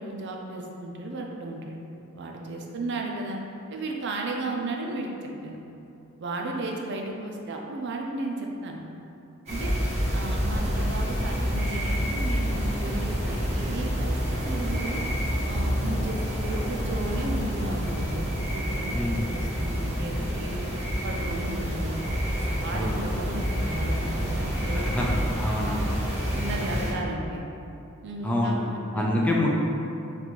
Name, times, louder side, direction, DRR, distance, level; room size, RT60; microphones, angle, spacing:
voice 1, 0.0-1.8 2.1-3.4 3.7-5.6 6.2-8.8 9.5-9.8 10.1-15.0 15.5-20.7 21.0-22.0 22.3-25.2 26.3-27.4 28.0-29.3, right 2 dB, 55° right, 0 dB, 0.5 m, -34 dB
sound 1, 9.5-26.9, equal, 35° right, 1.2 m, -28 dB
voice 2, 18.9-19.3 22.7-23.0 24.7-25.1 25.3-26.0 28.2-28.6 28.9-29.5, left 1 dB, 5° left, -3 dB, 0.4 m, -26 dB
3.8 x 2.4 x 4.5 m, 2.8 s
head